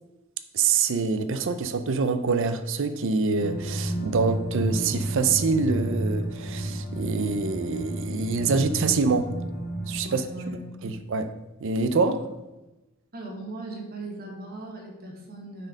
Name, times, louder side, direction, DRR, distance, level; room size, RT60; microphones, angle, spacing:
voice 1, 0.5-9.3 9.9-10.2 10.8-11.3 11.6-12.3, right 4 dB, 60° right, 0.5 m, -25 dB
sound 1, 3.4-10.0, right 1 dB, 45° left, 0.9 m, -31 dB
voice 2, 10.0-10.9 12.1-12.2 13.1-15.7, right 2 dB, 45° right, 1.4 m, -38 dB
6.2 x 4.3 x 5.1 m
head